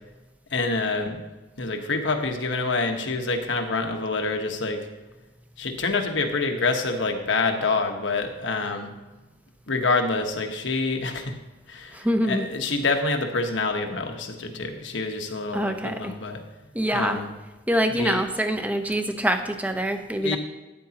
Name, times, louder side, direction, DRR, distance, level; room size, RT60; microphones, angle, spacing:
voice 1, 0.5-1.2 1.6-4.9 5.6-8.9 9.7-11.4 11.7-16.4 16.9-17.3 18.0-18.2 20.2-20.4, left 3 dB, 80° left, 4 dB, 1.2 m, -27 dB
voice 2, 11.9-12.5 15.5-16.1 16.7-17.2 17.7-20.4, equal, 10° right, 6 dB, 0.7 m, -25 dB
12.5 x 9.7 x 2.9 m, 1.1 s
head